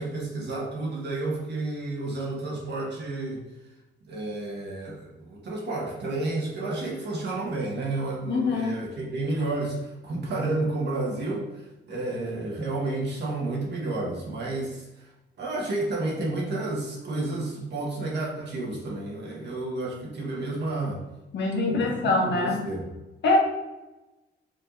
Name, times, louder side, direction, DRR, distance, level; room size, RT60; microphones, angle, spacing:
voice 1, 0.0-3.4 4.1-15.1 15.4-21.0 21.7-21.9 22.2-22.9, right 2 dB, 60° right, -3 dB, 1.5 m, -31 dB
voice 2, 8.3-8.7 21.3-22.6 23.2-23.4, left 3 dB, 60° left, -1 dB, 1.5 m, -24 dB
5.2 x 3.7 x 2.7 m, 1.0 s
cardioid pair, 90°, 20 cm